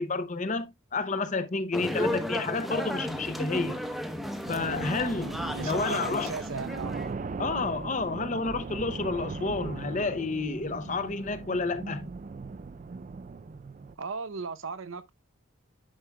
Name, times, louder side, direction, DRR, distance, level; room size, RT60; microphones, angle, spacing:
voice 1, 0.0-3.8 4.5-6.3 7.4-12.1, left 3 dB, 35° left, 0.6 m, -30 dB
sound 1, 1.7-7.1, equal, ahead, 0.8 m, -34 dB
sound 2, 4.5-13.9, right 4 dB, 35° right, 0.3 m, -38 dB
voice 2, 5.5-7.0 14.0-15.1, right 4 dB, 70° right, 0.6 m, -37 dB
10.5 x 5.9 x 2.2 m
head